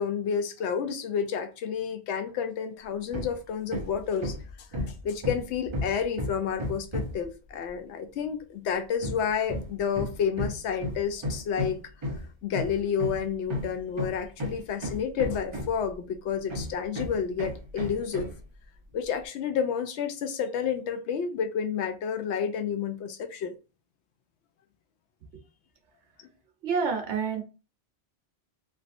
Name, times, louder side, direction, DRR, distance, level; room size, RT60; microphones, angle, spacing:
voice 1, 0.0-4.7 5.0-11.8 12.4-18.3 18.9-23.6, left 7 dB, 75° left, 0.8 m, -30 dB
Hammer, 3.1-3.4 3.7-7.3 9.0-15.9 16.5-18.4, left 1 dB, 30° right, 0.6 m, -34 dB
voice 2, 26.6-27.4, right 5 dB, 75° right, 1.1 m, -27 dB
3.2 x 2.6 x 2.5 m
omnidirectional pair, 1.2 m